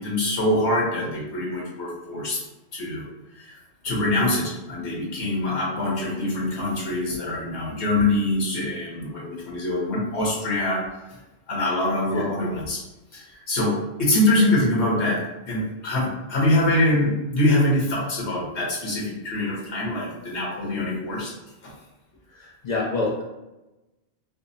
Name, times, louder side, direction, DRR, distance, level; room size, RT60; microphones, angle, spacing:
voice 1, 0.0-2.4 2.7-3.0 3.3-3.6 3.8-10.8 11.5-12.8 13.1-13.7 14.0-15.2 15.5-21.3 21.6-21.7, left 1 dB, 85° left, -4 dB, 1.4 m, -24 dB
voice 2, 22.3-23.2, left 3 dB, 50° left, -2 dB, 0.6 m, -27 dB
5.0 x 2.0 x 2.7 m, 1.0 s
omnidirectional pair, 1.1 m